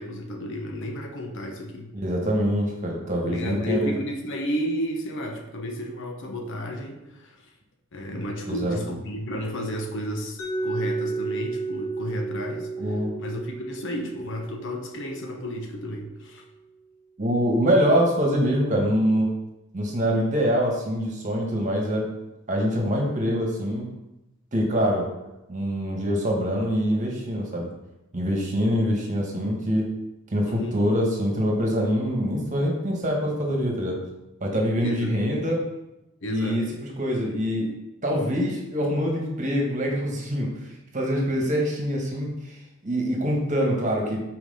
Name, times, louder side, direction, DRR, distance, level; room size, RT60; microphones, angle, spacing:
voice 1, 0.0-1.9 3.2-7.5 7.9-16.4 30.5-30.8 34.8-35.5 36.2-36.6, equal, 60° left, 2 dB, 1.0 m, -32 dB
voice 2, 1.9-3.9 8.5-8.8 12.8-13.1 17.2-19.3 19.7-22.0 22.5-23.8 24.5-25.1 25.5-27.7 28.1-29.9 30.3-34.0 34.4-35.6 36.3-36.6 37.0-37.7 38.0-40.5 40.9-42.3 42.8-44.2, equal, 35° right, 0 dB, 1.5 m, -24 dB
Mallet percussion, 10.4-16.2, right 3 dB, 75° left, 1.8 m, -33 dB
5.8 x 4.7 x 5.6 m, 0.94 s
head